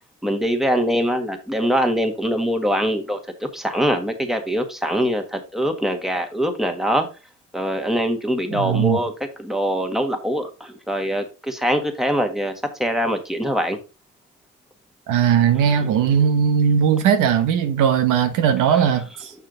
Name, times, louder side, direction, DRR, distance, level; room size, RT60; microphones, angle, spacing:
voice 1, 0.2-7.1 7.5-9.1 9.4-12.5 12.8-13.8 15.8-15.9 18.7-18.8, equal, ahead, 1.6 m, -23 dB
voice 2, 8.5-9.0 15.1-19.3, right 8 dB, 90° right, 1.2 m, -18 dB
6.6 x 5.6 x 3.9 m
cardioid pair, 90°, 30 cm